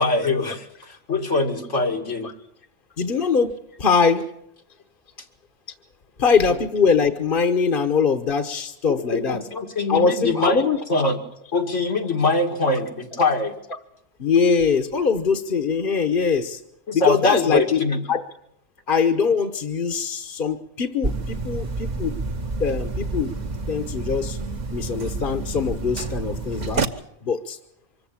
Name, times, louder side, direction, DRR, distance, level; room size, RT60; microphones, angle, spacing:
voice 1, 0.0-2.3 9.1-10.6 10.9-11.2 11.5-13.5 16.9-18.0, left 3 dB, 90° left, 4 dB, 2.6 m, -23 dB
voice 2, 3.0-4.2 6.2-9.4 9.9-10.8 14.2-16.6 16.9-17.8 18.1-18.3 18.9-22.2 22.6-23.3 23.7-24.4 24.7-26.8 27.2-27.6, left 5 dB, 50° left, 6 dB, 1.2 m, -22 dB
sound 1, 21.0-26.8, right 3 dB, 40° right, 1.2 m, -29 dB
25.0 x 14.5 x 8.7 m, 0.77 s
omnidirectional pair, 1.2 m